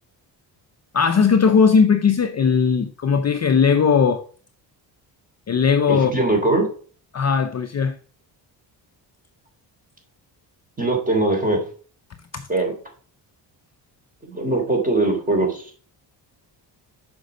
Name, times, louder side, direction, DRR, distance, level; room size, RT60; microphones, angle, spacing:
voice 1, 0.9-4.2 5.5-6.1 7.1-7.9 12.3-12.5, left 6 dB, 35° left, 0.6 m, -18 dB
voice 2, 5.9-6.6 10.8-11.6 12.5-12.7 14.2-15.7, right 2 dB, 15° right, 3.3 m, -21 dB
6.5 x 5.2 x 5.0 m
cardioid pair, 90°, 46 cm